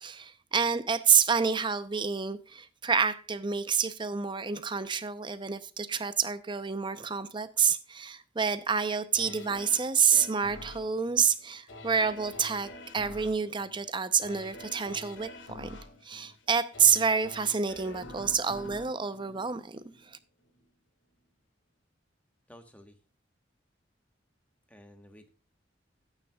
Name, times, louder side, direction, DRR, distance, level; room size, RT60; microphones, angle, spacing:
voice 1, 0.0-15.8 16.0-19.8 20.1-20.2, right 6 dB, 25° right, 0.7 m, -28 dB
sound 1, 9.2-20.1 20.5-20.6, left 2 dB, 90° left, 1.8 m, -47 dB
voice 2, 22.5-23.0 24.7-25.3, left 1 dB, 10° left, 1.2 m, -53 dB
13.0 x 9.0 x 2.3 m
head